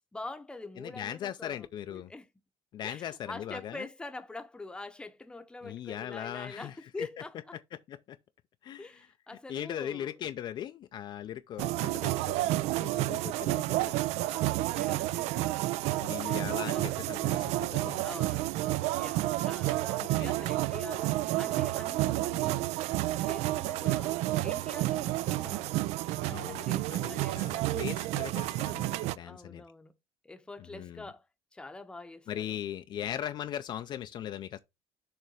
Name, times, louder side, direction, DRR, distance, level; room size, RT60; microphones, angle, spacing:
voice 1, 0.1-2.3 2.8-7.6 8.8-10.1 14.2-15.6 16.2-17.0 17.4-22.8 23.2-25.8 26.2-28.1 28.9-29.9 30.2-31.3 31.5-32.6, left 2 dB, 10° left, 0.7 m, -45 dB
voice 2, 0.8-2.1 2.7-3.9 5.6-7.1 7.7-8.2 8.6-8.9 9.5-13.9 16.0-18.0 20.0-20.4 26.3-29.6 30.7-31.0 32.3-34.6, left 10 dB, 45° left, 0.4 m, -39 dB
sound 1, 11.6-29.2, right 16 dB, 80° right, 0.4 m, -30 dB
6.8 x 3.3 x 6.1 m
cardioid pair, 150°, 11 cm